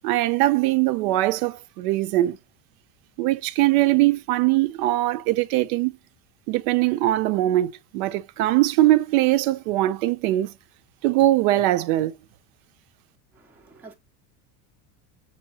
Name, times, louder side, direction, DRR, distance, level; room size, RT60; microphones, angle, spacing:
voice 1, 0.0-2.4 3.2-5.9 6.5-10.5 11.0-12.1, right 16 dB, 75° right, 0.6 m, -21 dB
voice 2, 13.3-13.9, right 3 dB, 5° right, 0.4 m, -48 dB
6.2 x 2.8 x 2.8 m
supercardioid pair, 150°, 43 cm